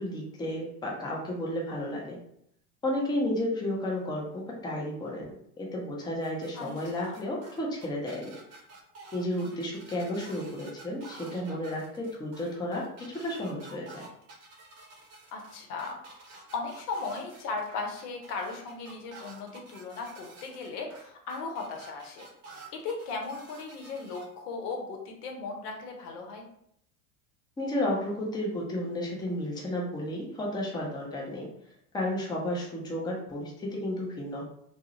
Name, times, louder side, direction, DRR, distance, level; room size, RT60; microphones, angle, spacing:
voice 1, 0.0-2.2 2.8-5.3 5.6-8.4 9.1-14.0 27.6-31.5 31.9-34.4, left 1 dB, 10° left, -3 dB, 0.5 m, -32 dB
sound 1, 6.2-24.2, right 3 dB, 35° right, 0.7 m, -50 dB
voice 2, 15.3-16.0 16.5-22.3 22.7-26.4, left 4 dB, 75° left, 2 dB, 0.7 m, -37 dB
2.3 x 2.0 x 2.8 m, 0.72 s
hypercardioid pair, 90°, 46 cm